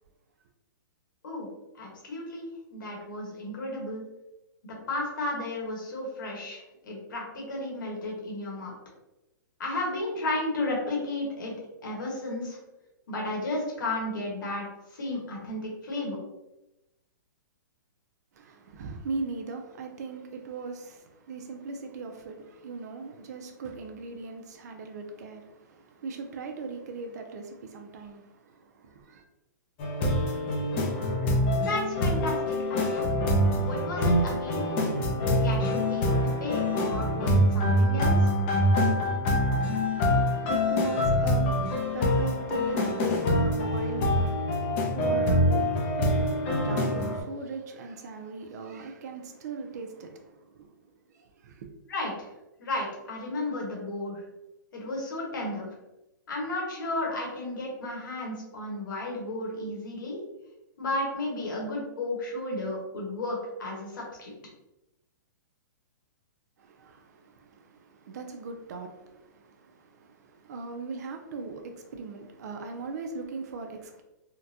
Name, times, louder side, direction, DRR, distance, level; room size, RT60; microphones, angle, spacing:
voice 1, 1.7-4.0 4.9-8.8 9.6-11.5 11.8-12.6 13.1-14.7 14.9-16.2 31.6-33.1 33.6-34.6 35.4-36.1 36.4-38.3 51.9-52.3 52.6-54.2 54.7-55.7 56.3-60.2 60.8-64.3, left 2 dB, 70° left, 1.3 m, -33 dB
voice 2, 18.4-29.2 39.5-50.7 51.2-51.7 66.6-74.0, right 4 dB, 55° right, 0.5 m, -39 dB
sound 1, 29.8-47.2, left 1 dB, 30° left, 0.5 m, -25 dB
3.8 x 2.2 x 2.7 m
hypercardioid pair, 155°, 11 cm